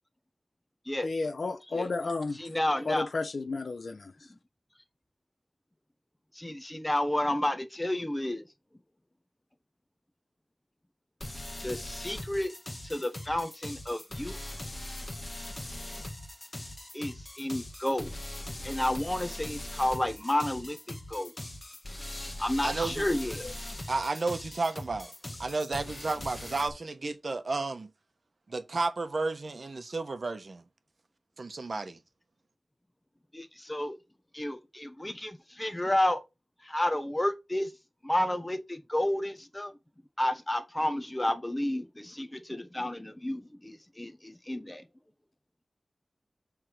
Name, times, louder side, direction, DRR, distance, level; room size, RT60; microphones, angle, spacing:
voice 1, 1.0-2.4 2.8-4.3, left 3 dB, 75° left, 0.9 m, -32 dB
voice 2, 2.4-3.1 6.3-8.4 11.6-12.5 12.8-14.4 16.9-18.1 18.6-21.3 22.4-23.6 33.3-34.0 34.3-36.2 36.6-37.7 38.0-39.7 40.2-44.8, left 1 dB, 15° left, 1.2 m, -31 dB
sound 1, 11.2-26.7, left 1 dB, 30° left, 2.0 m, -41 dB
voice 3, 22.6-23.0 23.9-25.1 25.4-27.9 28.5-30.6 31.4-32.0, right 3 dB, 60° right, 1.1 m, -32 dB
7.6 x 3.7 x 6.5 m
wide cardioid pair, 85°, 0 cm